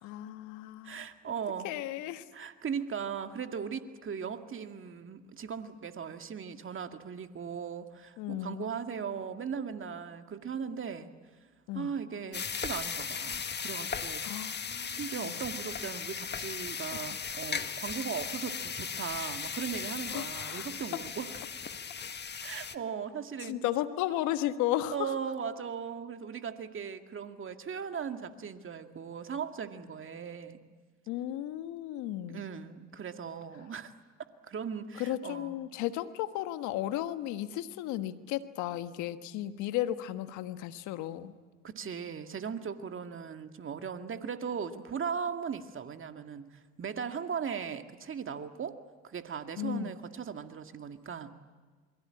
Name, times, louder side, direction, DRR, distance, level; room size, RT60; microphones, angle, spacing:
voice 1, 0.0-1.0 1.6-2.2 8.2-8.6 11.7-11.9 14.2-15.3 20.1-20.7 23.5-25.1 31.1-32.4 35.0-41.3 49.6-49.9, left 13 dB, 75° left, 11 dB, 1.4 m, -34 dB
voice 2, 0.8-1.7 2.3-11.1 11.7-14.2 14.9-21.3 22.4-23.6 24.9-30.6 32.3-33.9 34.4-35.6 41.6-48.8 49.0-51.3, right 7 dB, 45° right, 7 dB, 2.1 m, -38 dB
sound 1, 12.3-22.7, left 6 dB, 35° left, 1.6 m, -37 dB
28.0 x 22.0 x 8.8 m, 1.4 s
hypercardioid pair, 60°, 30 cm